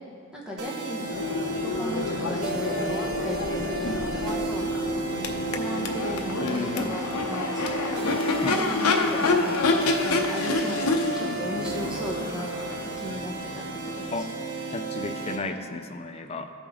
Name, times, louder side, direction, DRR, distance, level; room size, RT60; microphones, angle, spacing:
voice 1, 0.3-4.9 5.5-9.6 10.0-14.2, left 1 dB, 5° right, -4 dB, 1.0 m, -36 dB
sound 1, 0.6-15.4, right 4 dB, 85° right, 0.9 m, -34 dB
Crowd / Race car auto racing / Accelerating revving vroom, 0.9-14.8, left 2 dB, 80° left, 0.7 m, -28 dB
voice 2, 3.8-4.1 6.4-7.0 8.4-8.7 14.1-14.3 14.7-16.5, left 2 dB, 25° left, 6 dB, 0.4 m, -33 dB
14.5 x 5.2 x 3.6 m, 2.3 s
head